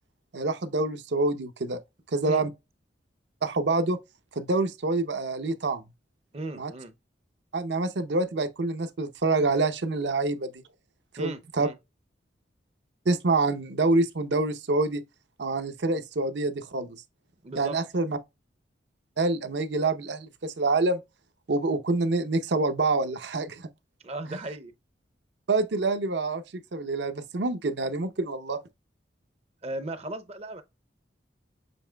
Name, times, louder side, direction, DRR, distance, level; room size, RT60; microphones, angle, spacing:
voice 1, 0.3-1.8 2.1-2.5 3.4-4.0 4.3-5.8 6.6-6.7 7.5-10.6 11.1-11.7 13.1-15.0 15.4-17.0 17.6-18.2 19.2-21.0 21.5-23.7 25.5-28.6, right 3 dB, 70° right, 0.7 m, -26 dB
voice 2, 6.3-6.9 11.2-11.8 17.4-17.8 24.0-24.7 29.6-30.6, right 2 dB, 35° right, 0.6 m, -36 dB
7.0 x 3.2 x 2.2 m
head